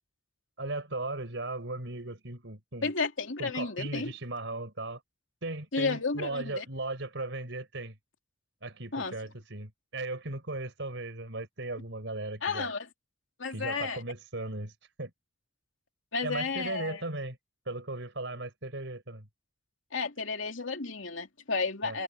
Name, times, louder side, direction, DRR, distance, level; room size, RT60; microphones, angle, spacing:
voice 1, 0.6-2.9 3.4-5.0 5.4-8.0 8.6-12.7 13.5-14.7 15.0-15.1 16.2-17.4 17.7-19.3 21.8-22.0, right 2 dB, 70° right, 4.5 m, -37 dB
voice 2, 2.8-4.1 5.7-6.6 8.9-9.1 12.4-12.9 13.4-14.0 16.1-17.0 19.9-22.0, left 4 dB, 80° left, 2.8 m, -32 dB
head